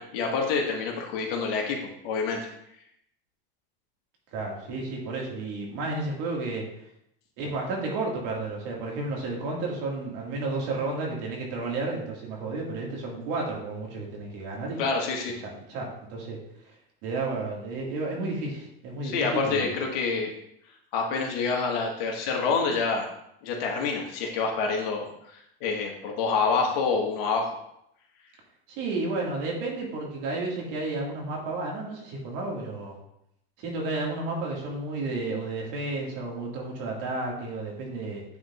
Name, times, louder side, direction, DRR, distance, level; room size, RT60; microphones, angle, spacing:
voice 1, 0.0-2.5 14.8-15.4 19.0-20.3 20.9-23.1 23.4-27.5, left 4 dB, 70° left, 1 dB, 1.7 m, -27 dB
voice 2, 4.3-6.6 7.4-14.9 15.7-16.4 16.6-16.8 17.0-19.8 28.7-33.0 33.6-38.2, right 3 dB, 65° right, -1 dB, 2.2 m, -32 dB
9.3 x 4.0 x 2.6 m, 0.77 s
supercardioid pair, 110°, 30 cm